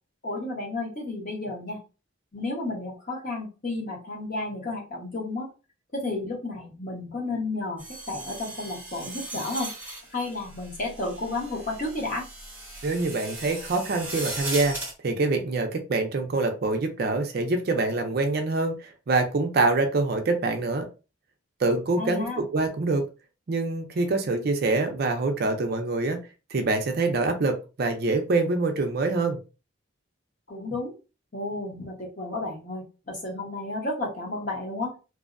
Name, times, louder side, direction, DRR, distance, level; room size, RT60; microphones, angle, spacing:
voice 1, 0.2-1.8 2.3-5.5 5.9-9.7 10.1-12.2 22.0-22.4 30.5-30.9 31.3-34.9, left 2 dB, 40° left, -2 dB, 0.9 m, -32 dB
sound 1, 7.8-14.9, right 2 dB, 10° right, 0.7 m, -38 dB
voice 2, 12.8-14.8 15.0-20.9 21.6-23.0 23.5-26.2 26.5-29.4, right 3 dB, 50° right, 5 dB, 0.4 m, -25 dB
2.6 x 2.0 x 2.4 m, 0.31 s
head